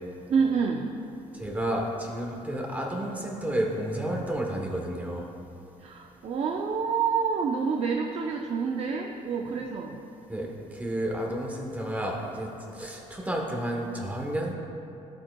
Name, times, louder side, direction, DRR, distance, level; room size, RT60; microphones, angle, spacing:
voice 1, 0.3-1.0 5.8-10.0, right 5 dB, 50° right, 1 dB, 0.5 m, -28 dB
voice 2, 1.3-5.3 10.3-14.5, right 1 dB, 10° right, -1 dB, 1.0 m, -31 dB
12.5 x 7.7 x 2.3 m, 2.8 s
cardioid pair, 115°, 13 cm